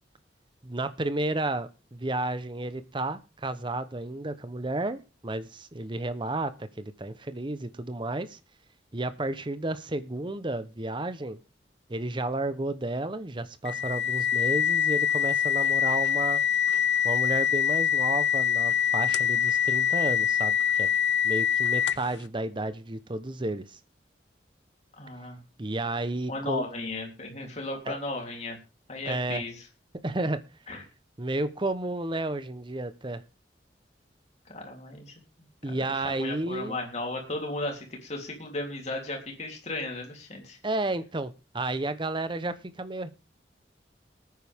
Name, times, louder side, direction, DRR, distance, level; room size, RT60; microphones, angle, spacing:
voice 1, 0.6-8.4 8.9-11.4 11.9-16.4 17.0-20.9 21.2-23.8 25.6-26.7 27.9-28.0 29.1-29.4 30.0-30.4 31.2-33.2 35.6-36.8 40.6-43.1, right 2 dB, 25° right, 12 dB, 0.9 m, -32 dB
sound 1, 13.6-22.2, left 8 dB, 75° left, 0.6 m, -25 dB
voice 2, 25.0-25.4 26.3-28.6 28.9-29.6 30.7-30.8 34.5-35.1 36.0-40.6, left 2 dB, 40° left, 1 dB, 3.3 m, -35 dB
20.0 x 9.4 x 3.6 m, 0.31 s
head